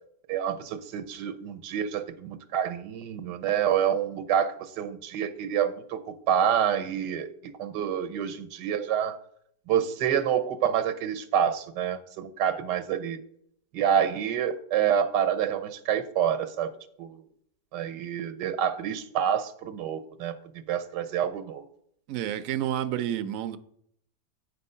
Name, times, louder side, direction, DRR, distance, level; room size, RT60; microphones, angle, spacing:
voice 1, 0.3-6.0 6.3-7.3 7.6-9.2 9.7-13.2 13.7-16.7 17.0-17.2 17.7-20.3 20.7-21.7, right 9 dB, 85° right, 1.4 m, -27 dB
voice 2, 22.1-23.6, right 11 dB, 65° right, 0.9 m, -29 dB
8.6 x 5.3 x 5.5 m
omnidirectional pair, 1.8 m